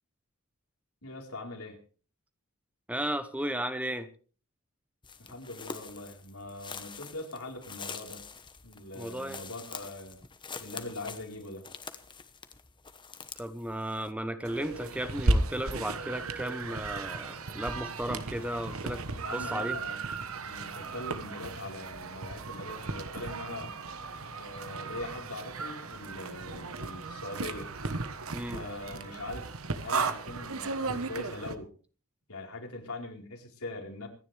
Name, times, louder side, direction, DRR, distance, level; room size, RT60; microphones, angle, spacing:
voice 1, 1.0-1.8 5.2-8.2 8.6-10.2 10.6-11.7 19.2-20.1 20.4-23.7 24.3-27.7 28.5-31.7 32.3-34.1, left 2 dB, 85° left, 1 dB, 4.2 m, -42 dB
voice 2, 2.9-4.1 8.9-9.4 13.4-19.0 19.3-19.8 28.3-28.6, right 1 dB, 5° right, 10 dB, 1.0 m, -34 dB
sound 1, 5.0-14.1, left 5 dB, 20° left, 1.1 m, -45 dB
sound 2, 14.4-31.5, right 3 dB, 70° right, 1.2 m, -35 dB
26.0 x 10.5 x 3.4 m, 0.39 s
head